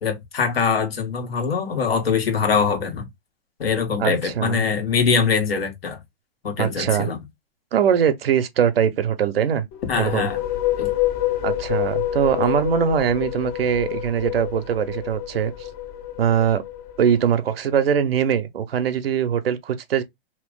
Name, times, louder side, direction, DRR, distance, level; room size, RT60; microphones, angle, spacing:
voice 1, 0.0-3.1 3.6-6.0 6.4-7.2 9.8-10.4 10.8-10.9, left 5 dB, 85° left, 1.4 m, -23 dB
voice 2, 4.0-4.6 6.6-7.1 7.7-9.7 10.0-10.3 11.4-15.5 16.2-16.6 17.0-20.0, right 8 dB, 75° right, 0.8 m, -21 dB
sound 1, 9.7-17.3, left 14 dB, 40° left, 0.7 m, -27 dB
2.9 x 2.5 x 3.6 m
hypercardioid pair, 125°, 30 cm